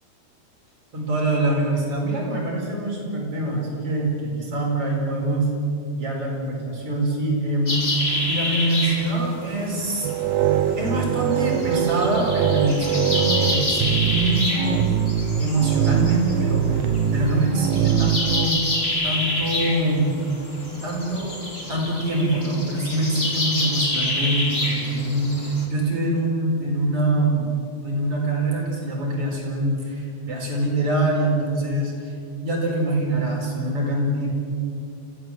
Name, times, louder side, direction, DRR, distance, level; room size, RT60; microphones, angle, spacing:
voice 1, 0.9-5.5 5.9-10.1 10.8-14.9 15.4-18.7 19.0-20.2 20.8-21.4 21.7-27.5 27.8-31.9 32.4-34.3, right 1 dB, 35° right, -2 dB, 5.7 m, -24 dB
Connemara Woodland, 7.7-25.7, left 1 dB, 15° left, 2.5 m, -28 dB
sound 1, 10.0-18.5, right 10 dB, 80° right, 2.5 m, -23 dB
27.0 x 16.0 x 7.7 m, 2.6 s
omnidirectional pair, 4.5 m